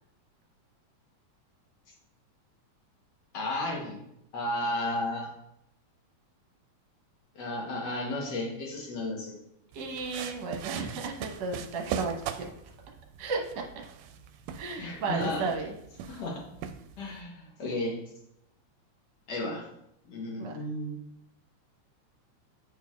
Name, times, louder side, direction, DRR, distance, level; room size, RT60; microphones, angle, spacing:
voice 1, 3.3-4.0 4.3-5.3 7.3-9.4 14.7-15.5 16.1-16.4 17.0-18.0 19.3-19.7 20.1-21.0, left 1 dB, 75° left, -1 dB, 1.0 m, -33 dB
voice 2, 9.7-12.5 13.2-13.6 14.6-15.7 20.4-20.6, right 4 dB, 65° right, 0 dB, 2.1 m, -34 dB
sound 1, 9.7-17.2, right 8 dB, 85° right, 2.0 m, -41 dB
10.0 x 4.4 x 2.4 m, 0.79 s
omnidirectional pair, 3.5 m